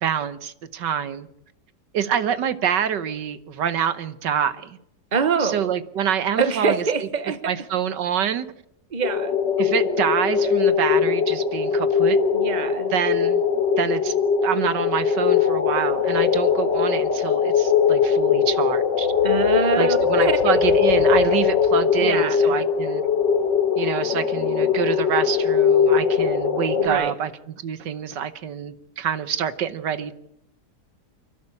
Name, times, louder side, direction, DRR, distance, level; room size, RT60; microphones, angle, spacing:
voice 1, 0.0-1.3 1.9-4.8 5.4-6.8 7.4-8.5 9.6-12.2 12.9-13.4 13.8-14.1 14.4-19.1 19.8-23.0 23.8-27.3 27.6-30.1, right 8 dB, 80° right, 14 dB, 1.7 m, -26 dB
voice 2, 5.1-5.7 6.4-7.5 8.9-9.4 12.3-12.9 19.2-20.0 20.2-20.6 22.0-22.5 26.7-27.1, right 5 dB, 25° right, 12 dB, 1.3 m, -24 dB
sound 1, 9.0-26.9, left 6 dB, 75° left, 2.5 m, -20 dB
28.5 x 12.5 x 8.5 m, 0.80 s
omnidirectional pair, 1.9 m